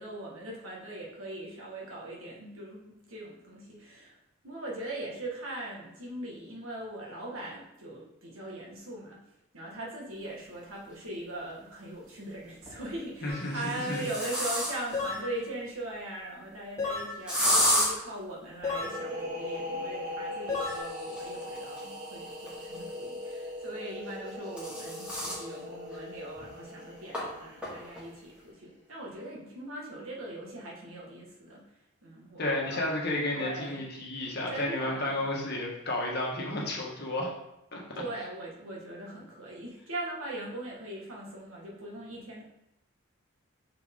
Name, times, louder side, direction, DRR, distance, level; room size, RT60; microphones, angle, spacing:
voice 1, 0.0-4.2 4.4-9.2 9.5-31.6 32.0-32.8 33.3-33.8 34.5-35.2 37.9-42.4, right 1 dB, 75° right, -3 dB, 1.6 m, -40 dB
sound 1, 10.9-11.0 12.4-12.9 13.4-15.0 17.3-17.9 20.5-23.1 24.1-25.4 25.9-26.0 26.4-26.5 27.1-27.2 27.6-28.0, equal, 5° right, 1.9 m, -31 dB
voice 2, 13.2-14.0 32.4-37.3 37.7-37.8, left 1 dB, 50° left, -2 dB, 1.4 m, -32 dB
sound 2, 13.3-13.5 14.9-15.3 16.8-17.2 18.6-19.0 20.5-20.8, left 4 dB, 15° left, 1.6 m, -32 dB
sound 3, 18.7-28.2, left 1 dB, 35° right, 1.5 m, -40 dB
6.3 x 4.5 x 3.7 m, 0.85 s
head